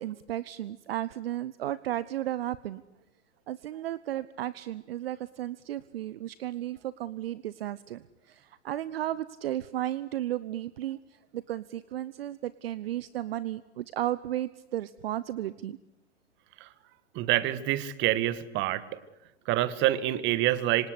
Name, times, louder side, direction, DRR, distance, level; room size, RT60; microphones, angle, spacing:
voice 1, 0.0-2.8 3.5-11.0 11.3-15.8, right 13 dB, 55° right, 17 dB, 1.0 m, -34 dB
voice 2, 17.1-19.0 19.5-20.9, right 14 dB, 30° right, 15 dB, 1.8 m, -27 dB
27.0 x 25.5 x 8.3 m, 0.93 s
figure-of-eight pair, 105°, 35 cm